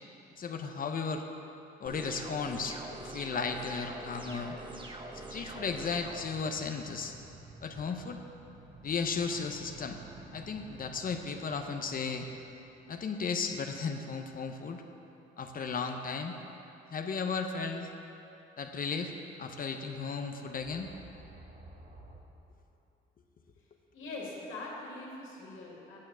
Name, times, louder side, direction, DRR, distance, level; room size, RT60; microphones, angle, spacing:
voice 1, 0.4-1.2 1.8-4.6 5.3-7.1 7.6-8.2 8.8-10.0 10.3-12.3 12.9-14.8 15.4-16.3 16.9-17.9 18.6-19.1 19.4-20.9, left 5 dB, 45° left, 5 dB, 0.8 m, -35 dB
sound 1, 1.8-6.2, right 2 dB, 25° right, 1.1 m, -44 dB
sound 2, 4.9-13.5 20.4-22.2, right 2 dB, 45° right, 1.4 m, -53 dB
voice 2, 23.9-26.0, left 2 dB, 80° left, -4 dB, 2.3 m, -42 dB
9.6 x 6.6 x 6.2 m, 2.8 s
cardioid pair, 90°, 20 cm